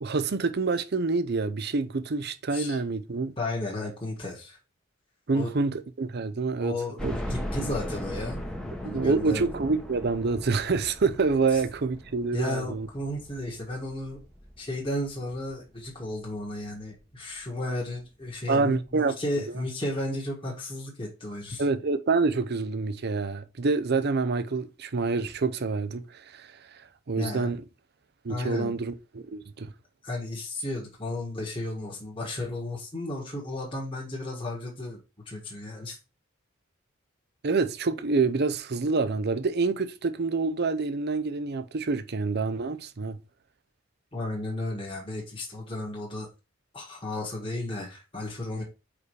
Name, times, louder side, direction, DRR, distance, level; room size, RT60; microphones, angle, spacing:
voice 1, 0.0-3.3 5.3-6.7 7.0-7.1 8.8-12.9 18.5-19.1 21.6-26.5 27.1-27.6 28.2-29.7 37.4-43.2, right 4 dB, 50° right, 0.6 m, -27 dB
voice 2, 3.4-4.6 5.3-5.5 6.6-8.4 8.8-9.4 11.5-11.6 12.3-14.2 14.6-21.7 27.1-27.5 28.3-28.8 30.0-35.0 35.2-36.0 44.1-46.3 46.7-48.6, left 1 dB, 25° left, 1.6 m, -34 dB
sound 1, 7.0-15.9 16.4-16.5 16.8-16.9 18.1-18.2 18.5-18.6, equal, 5° left, 1.0 m, -38 dB
4.9 x 4.8 x 4.7 m
head